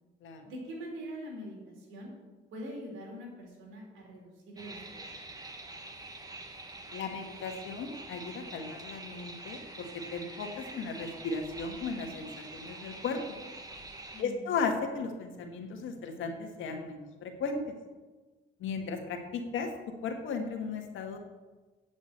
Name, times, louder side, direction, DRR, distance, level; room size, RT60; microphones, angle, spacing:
voice 1, 0.4-2.1 2.5-5.0 14.1-14.4, equal, 85° right, -1 dB, 3.8 m, -43 dB
sound 1, 4.6-14.2, right 2 dB, 20° right, 1.5 m, -45 dB
voice 2, 6.9-9.9 10.1-13.2 14.2-17.7 18.6-19.7 20.0-21.2, left 4 dB, 80° left, 4 dB, 1.6 m, -36 dB
8.9 x 6.2 x 7.9 m, 1.3 s
cardioid pair, 90°, 20 cm